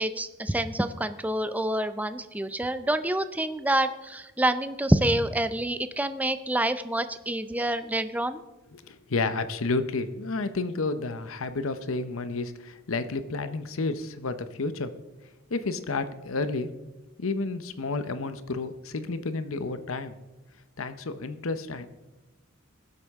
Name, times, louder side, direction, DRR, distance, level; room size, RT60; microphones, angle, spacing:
voice 1, 0.0-8.4, right 1 dB, 10° right, 11 dB, 0.5 m, -27 dB
voice 2, 8.7-14.9 15.5-16.7 17.2-20.2 20.8-21.9, left 3 dB, 75° left, 11 dB, 0.8 m, -31 dB
20.0 x 7.9 x 3.6 m, 1.1 s
head